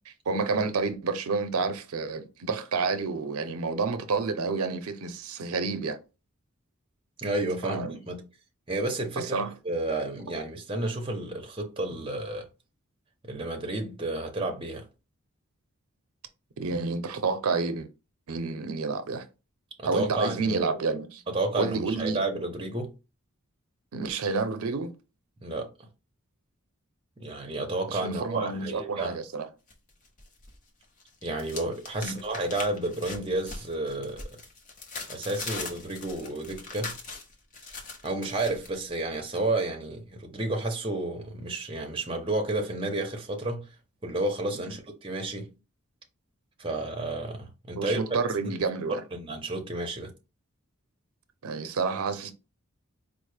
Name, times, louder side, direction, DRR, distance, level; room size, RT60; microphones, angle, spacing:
voice 1, 0.1-6.0 7.6-8.0 9.2-9.5 16.6-17.9 18.3-19.3 19.8-21.2 21.6-22.2 23.9-24.9 27.9-29.5 32.0-32.2 47.8-49.0 51.4-52.3, right 4 dB, 85° right, 0.5 m, -29 dB
voice 2, 7.2-8.3 8.7-9.4 9.6-12.5 13.2-14.9 19.8-20.8 21.3-22.9 25.4-25.7 27.2-29.2 31.2-34.3 35.1-37.0 38.0-43.7 44.0-45.5 46.6-48.0 48.4-48.6 49.1-50.1, right 2 dB, 25° right, 0.6 m, -31 dB
sound 1, 29.7-30.6 30.8-38.7, left 3 dB, 35° left, 0.6 m, -41 dB
4.3 x 2.0 x 3.2 m
head